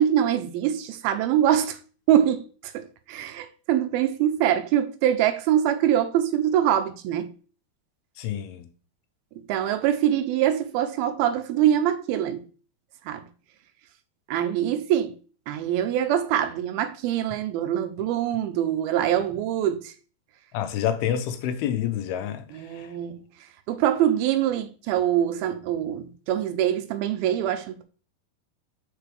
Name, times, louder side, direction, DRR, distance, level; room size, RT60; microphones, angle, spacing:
voice 1, 0.0-1.8 2.1-7.3 9.5-12.4 13.1-13.2 14.3-15.1 15.5-19.9 22.5-23.2 23.7-27.8, right 10 dB, 85° right, 2.5 m, -24 dB
voice 2, 8.2-8.7 20.5-22.9, left 10 dB, 85° left, 2.6 m, -28 dB
6.8 x 4.6 x 3.3 m
omnidirectional pair, 4.4 m